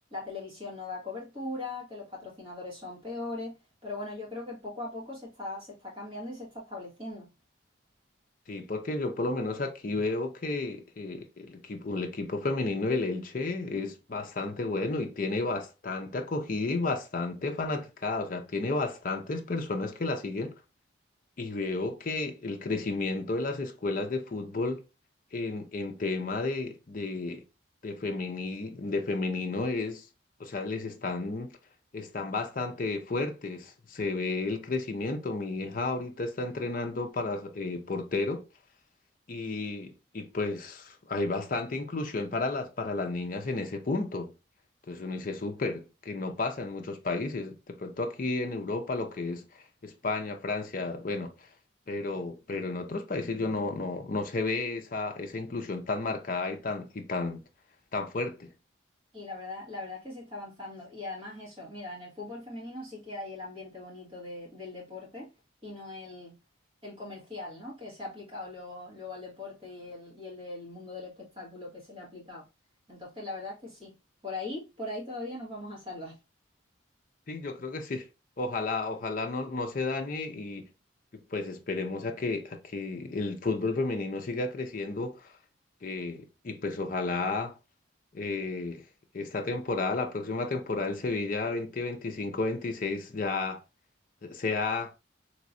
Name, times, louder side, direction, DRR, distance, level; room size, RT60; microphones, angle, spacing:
voice 1, 0.1-7.3 59.1-65.3 65.6-66.4 66.8-72.5 72.9-73.9 74.2-76.2, left 2 dB, 30° right, 1.8 m, -40 dB
voice 2, 8.5-20.6 21.4-24.8 25.3-27.4 27.8-30.1 30.4-31.6 31.9-38.5 39.3-44.3 44.9-51.3 51.9-57.4 57.9-58.5 77.3-78.1 78.4-80.7 81.1-85.3 85.8-87.6 88.1-88.8 89.1-93.6 94.2-94.9, left 3 dB, 45° left, 0.5 m, -32 dB
3.4 x 3.0 x 2.6 m
head